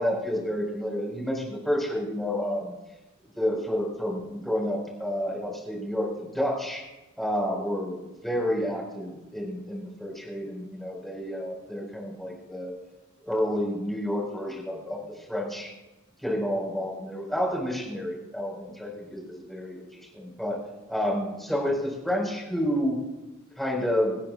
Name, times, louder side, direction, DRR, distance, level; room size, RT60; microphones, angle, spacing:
voice 1, 0.0-2.8 3.3-6.8 7.2-12.7 13.2-15.7 16.2-20.6 20.9-23.0 23.6-24.2, equal, ahead, -2 dB, 4.5 m, -30 dB
27.0 x 10.5 x 2.4 m, 1.0 s
head